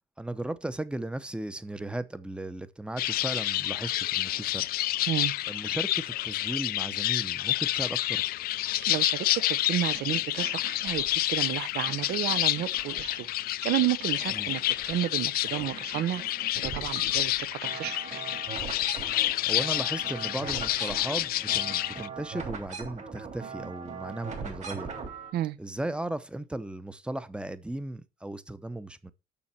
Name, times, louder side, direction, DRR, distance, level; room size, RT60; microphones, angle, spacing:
voice 1, 0.2-4.7 5.5-8.2 14.3-14.5 19.5-24.9 25.6-29.1, right 1 dB, 5° right, 0.7 m, -36 dB
sound 1, 3.0-22.1, left 15 dB, 60° left, 0.4 m, -29 dB
voice 2, 8.9-13.3 13.6-14.6 14.9-16.2 16.6-18.3 25.3-25.6, right 13 dB, 70° right, 0.8 m, -31 dB
sound 2, 9.9-11.4 11.9-13.5 13.8-15.1 15.4-25.3, right 5 dB, 45° right, 3.2 m, -42 dB
7.0 x 6.5 x 5.9 m
cardioid pair, 110°, 17 cm